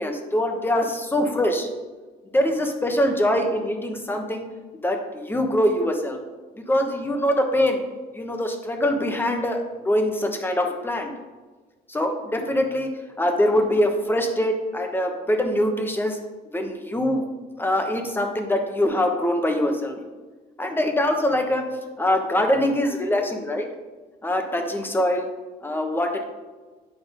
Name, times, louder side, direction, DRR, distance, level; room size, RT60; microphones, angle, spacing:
voice 1, 0.0-1.7 2.3-4.4 4.8-6.2 6.7-7.8 8.1-11.1 11.9-12.9 13.2-16.2 16.5-17.3 17.6-20.0 20.6-21.6 22.0-23.7 24.2-25.3 25.6-26.2, left 1 dB, 10° left, 4 dB, 1.2 m, -23 dB
9.6 x 3.6 x 5.1 m, 1.3 s
cardioid pair, 110°, 17 cm